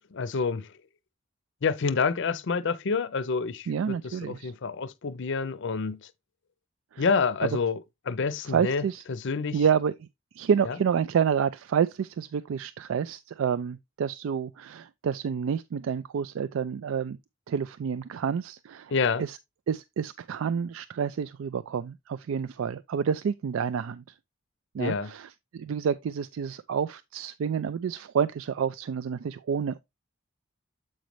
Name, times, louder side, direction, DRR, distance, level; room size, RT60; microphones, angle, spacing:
voice 1, 0.1-0.7 1.6-6.1 7.0-7.8 8.1-8.8 9.1-9.6 10.7-10.8 18.9-19.2 24.8-25.1, left 5 dB, 65° left, 0.5 m, -28 dB
voice 2, 3.7-4.5 6.9-7.1 7.4-7.5 8.4-9.0 9.5-10.1 10.3-17.2 17.5-18.9 19.2-19.4 19.7-24.0 24.7-29.8, right 7 dB, 70° right, 0.3 m, -29 dB
7.6 x 5.2 x 3.0 m
head